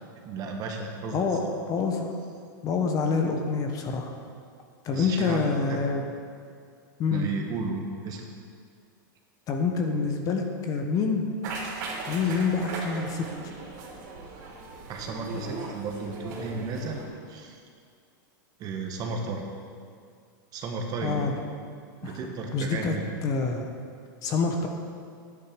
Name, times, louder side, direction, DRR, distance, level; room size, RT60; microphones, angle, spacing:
voice 1, 0.2-1.5 4.9-5.8 7.1-8.2 12.2-12.4 14.9-17.0 17.3-17.6 18.6-19.4 20.5-21.3 22.0-23.0, right 3 dB, 35° right, 2 dB, 1.5 m, -34 dB
voice 2, 1.7-2.2 2.6-4.1 4.8-6.0 7.0-7.3 9.5-11.2 12.1-13.2 21.0-21.3 22.0-22.2 22.5-22.9 23.2-23.7 24.2-24.7, left 5 dB, 30° left, 4 dB, 1.2 m, -26 dB
sound 1, 11.4-17.0, right 3 dB, 60° right, 3.1 m, -38 dB
10.5 x 9.7 x 5.2 m, 2.2 s
supercardioid pair, 140°, 11 cm